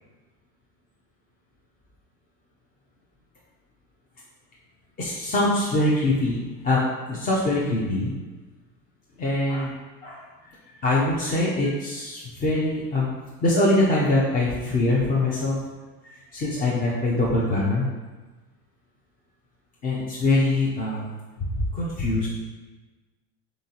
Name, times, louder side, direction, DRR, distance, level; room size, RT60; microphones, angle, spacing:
voice 1, 5.0-8.1 9.2-9.8 10.0-10.2 10.8-13.1 13.4-15.6 16.3-17.9 19.8-21.0 21.7-22.3, left 2 dB, 20° left, -5 dB, 0.3 m, -23 dB
3.8 x 3.7 x 2.8 m, 1.2 s
cardioid pair, 155°, 43 cm